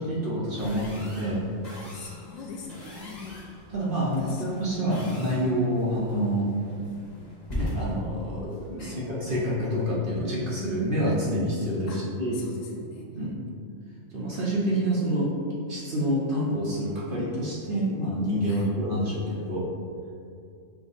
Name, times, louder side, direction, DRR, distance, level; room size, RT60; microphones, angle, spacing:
voice 1, 0.0-1.4 3.7-6.5 7.6-12.4 13.1-13.3 14.1-15.3 15.7-19.7, equal, 50° right, -6 dB, 0.8 m, -27 dB
sound 1, 0.6-9.7, left 1 dB, 35° left, 1.0 m, -40 dB
voice 2, 1.9-3.4 4.2-4.5 8.8-9.1 11.9-12.1 12.3-13.1 18.5-18.7, left 5 dB, 70° left, -1 dB, 0.9 m, -42 dB
5.9 x 2.0 x 3.9 m, 2.4 s
omnidirectional pair, 1.4 m